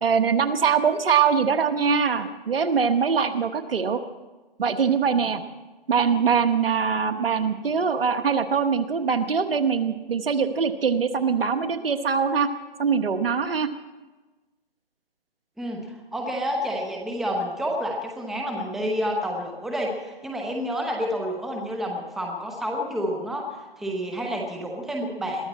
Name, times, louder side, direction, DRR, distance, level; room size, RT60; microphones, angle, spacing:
voice 1, 0.0-4.0 4.6-5.4 5.9-12.5 12.8-13.7, right 6 dB, 70° right, 9 dB, 1.4 m, -23 dB
voice 2, 15.6-25.5, equal, ahead, 1 dB, 0.9 m, -29 dB
22.0 x 14.5 x 4.3 m, 1.2 s
hypercardioid pair, 155°, 29 cm